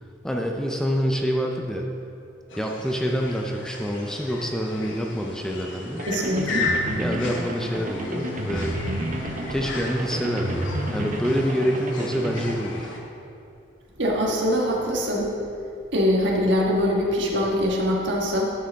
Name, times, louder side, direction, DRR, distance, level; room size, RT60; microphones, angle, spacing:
voice 1, 0.2-1.9 2.6-6.0 7.0-8.7 9.5-13.0, equal, 5° left, 1 dB, 0.5 m, -26 dB
sound 1, 2.5-13.0, left 3 dB, 75° left, 1.1 m, -35 dB
sound 2, 6.0-12.5, right 1 dB, 40° right, 0.8 m, -31 dB
voice 2, 6.1-6.7 14.0-15.3 15.9-18.5, equal, 65° right, -2 dB, 1.5 m, -23 dB
12.0 x 6.2 x 3.5 m, 2.6 s
head